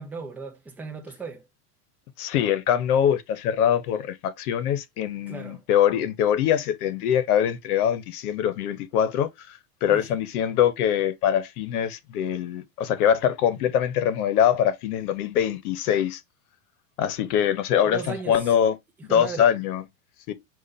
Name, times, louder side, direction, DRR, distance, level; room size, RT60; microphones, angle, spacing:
voice 1, 0.0-1.5 5.3-5.6 9.9-10.1 17.9-18.5 19.1-19.5, right 4 dB, 5° right, 0.4 m, -36 dB
voice 2, 2.2-16.2 17.0-18.8 19.1-19.8 20.3-20.4, left 9 dB, 65° left, 1.0 m, -23 dB
4.8 x 2.5 x 3.9 m
supercardioid pair, 135°, 47 cm